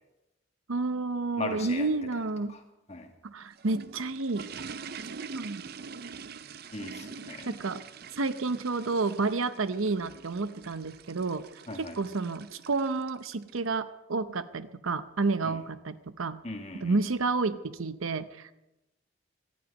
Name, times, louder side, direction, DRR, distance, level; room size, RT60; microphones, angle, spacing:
voice 1, 0.7-2.5 3.2-4.4 5.3-5.6 7.5-7.8 8.2-11.5 11.7-16.4 16.7-18.5, right 3 dB, 90° right, 13 dB, 0.8 m, -30 dB
voice 2, 1.4-1.9 2.5-2.6 2.9-3.1 6.7-7.5 11.7-12.0 15.4-15.6 16.4-17.0, left 2 dB, 30° left, 4 dB, 1.7 m, -38 dB
sound 1, 3.3-13.6, right 5 dB, 50° right, 0.5 m, -44 dB
18.0 x 12.5 x 5.4 m, 0.94 s
head